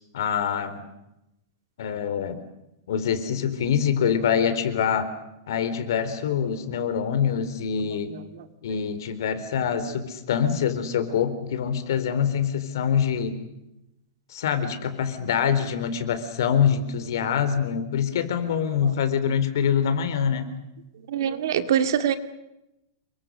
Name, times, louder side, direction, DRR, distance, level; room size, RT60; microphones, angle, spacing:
voice 1, 0.1-0.8 1.8-2.4 2.9-5.1 5.5-8.1 8.6-13.4 14.3-20.5, left 7 dB, 65° left, 11 dB, 4.2 m, -25 dB
voice 2, 7.9-8.4 19.0-19.1 21.1-22.2, right 9 dB, 65° right, 9 dB, 2.3 m, -25 dB
29.0 x 24.0 x 6.6 m, 0.89 s
supercardioid pair, 175°, 2 cm